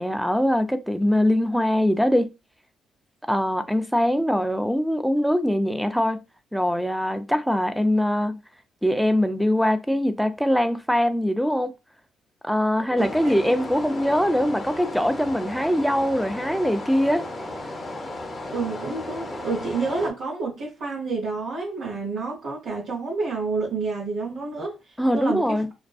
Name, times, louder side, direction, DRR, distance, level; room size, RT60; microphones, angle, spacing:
voice 1, 0.0-2.3 3.3-6.2 6.5-8.3 8.8-11.7 12.4-17.3 25.0-25.7, equal, ahead, 0.3 m, -22 dB
voice 2, 12.9-13.6 18.5-24.8 25.1-25.6, right 4 dB, 70° right, 0.9 m, -29 dB
sound 1, 13.0-20.1, left 2 dB, 30° left, 0.7 m, -35 dB
2.4 x 2.2 x 2.3 m
cardioid pair, 90°, 0 cm